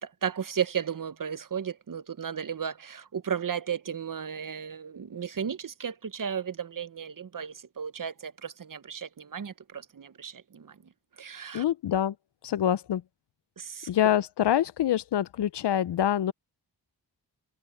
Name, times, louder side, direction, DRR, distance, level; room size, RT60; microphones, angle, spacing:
voice 1, 0.0-10.8 11.2-11.6 13.6-13.9, right 7 dB, 50° right, 0.8 m, -34 dB
voice 2, 11.5-12.1 12.4-13.0 13.9-16.3, left 11 dB, 70° left, 0.5 m, -25 dB
wide cardioid pair, 110°, 43 cm